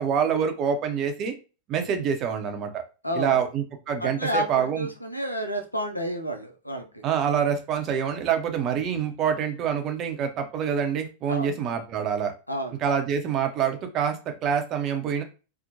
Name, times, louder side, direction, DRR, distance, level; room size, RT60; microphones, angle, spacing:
voice 1, 0.0-1.3 1.7-2.8 3.1-4.9 7.0-12.3 12.8-15.2, right 7 dB, 35° right, 6 dB, 0.5 m, -26 dB
voice 2, 3.0-3.4 4.0-7.1 11.3-11.5 12.5-12.8, equal, 85° left, 6 dB, 0.4 m, -30 dB
2.8 x 2.0 x 2.6 m, 0.33 s
figure-of-eight pair, 90°, 0 cm